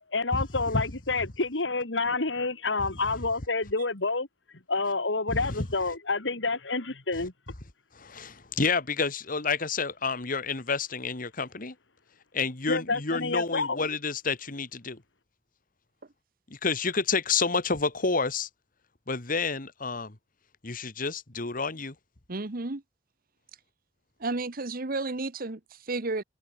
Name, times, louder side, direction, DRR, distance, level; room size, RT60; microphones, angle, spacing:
voice 1, 0.1-4.3 4.7-7.3 12.7-13.8, left 3 dB, 85° left, 2.4 m, -28 dB
voice 2, 5.3-5.7 7.9-11.7 12.3-15.0 16.5-18.5 19.1-20.2 20.6-21.9, left 4 dB, 50° left, 2.0 m, -29 dB
voice 3, 22.3-22.8 24.2-26.2, right 3 dB, 50° right, 1.2 m, -32 dB
head